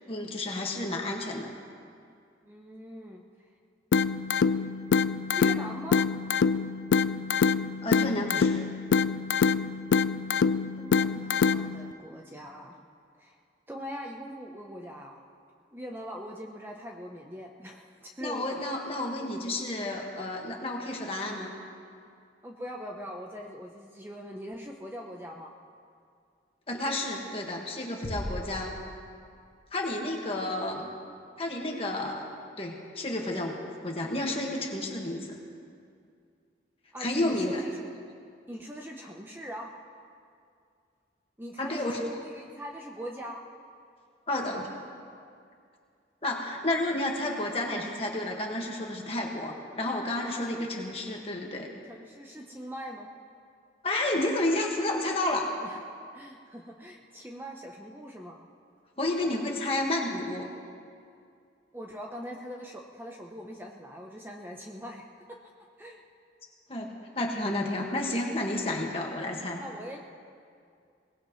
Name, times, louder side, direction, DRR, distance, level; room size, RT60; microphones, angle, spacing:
voice 1, 0.1-1.5 7.8-8.6 18.2-21.5 26.7-28.7 29.7-30.9 31.4-32.3 32.6-35.4 37.0-37.6 41.6-42.0 44.3-44.7 46.2-51.7 53.8-55.5 59.0-60.5 66.7-69.6, left 1 dB, 30° left, 0 dB, 1.7 m, -31 dB
voice 2, 2.4-3.2 5.3-6.0 10.8-12.8 13.2-13.4 13.7-15.2 15.7-18.6 22.4-25.5 36.9-37.8 38.5-39.7 41.4-43.4 50.1-50.6 51.9-53.1 55.6-55.8 56.1-58.4 61.7-65.0 65.8-66.0 69.2-70.0, equal, 10° right, 0 dB, 0.8 m, -42 dB
sound 1, 3.9-11.9, left 5 dB, 70° left, 0.4 m, -26 dB
sound 2, 28.0-29.8, equal, 55° left, 1.2 m, -38 dB
22.5 x 18.5 x 3.2 m, 2.3 s
head